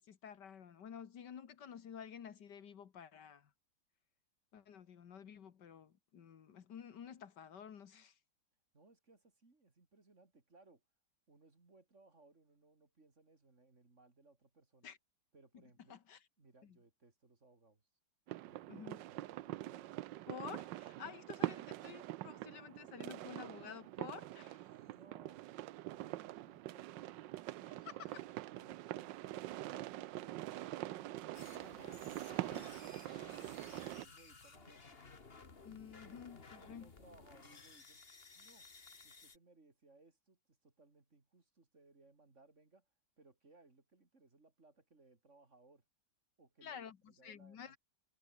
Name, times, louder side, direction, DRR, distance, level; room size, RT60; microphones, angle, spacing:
voice 1, 0.1-3.5 4.5-8.2 14.8-15.0 15.9-16.2 16.6-16.8 18.7-19.0 20.3-24.6 27.8-28.2 32.5-32.9 35.6-36.9 46.6-47.8, left 7 dB, 70° left, 2.0 m, -51 dB
voice 2, 8.7-10.8 11.3-14.9 15.3-16.0 16.4-17.8 18.4-20.0 24.7-25.5 25.9-27.2 33.3-35.0 35.7-36.2 36.6-38.0 38.3-38.7 39.0-42.9 43.2-45.8 46.4-47.8, right 3 dB, 40° right, 3.5 m, -66 dB
sound 1, 18.3-34.1, right 15 dB, 80° right, 1.3 m, -44 dB
sound 2, 31.3-39.4, left 4 dB, 35° left, 2.1 m, -57 dB
omnidirectional pair, 1.9 m